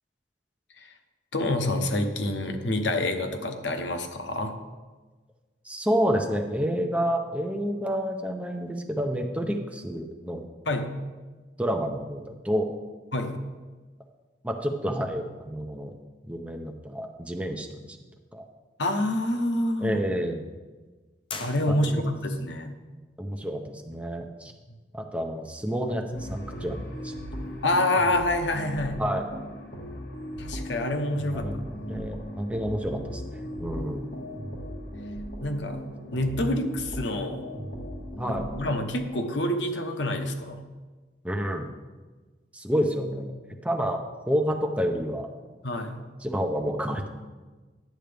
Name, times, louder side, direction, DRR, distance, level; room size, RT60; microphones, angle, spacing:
voice 1, 1.3-4.6 10.7-10.9 13.1-13.4 18.8-20.0 21.4-22.8 27.6-29.0 30.4-31.6 33.7-33.8 35.4-35.8 36.1-37.5 38.3-40.6 45.6-46.0, left 1 dB, 80° left, 6 dB, 0.9 m, -27 dB
voice 2, 5.6-10.4 11.6-12.7 14.4-15.9 16.3-18.0 18.3-18.4 19.8-20.5 21.7-22.1 23.2-24.5 24.9-27.1 29.0-29.3 31.3-34.1 38.2-38.5 41.2-41.7 42.5-43.3 43.6-45.3 46.2-47.1, equal, 10° right, 3 dB, 0.6 m, -29 dB
sound 1, 21.3-22.3, left 4 dB, 30° left, 0.7 m, -40 dB
sound 2, 26.1-38.9, equal, 55° left, 1.9 m, -37 dB
10.5 x 7.7 x 3.4 m, 1.3 s
head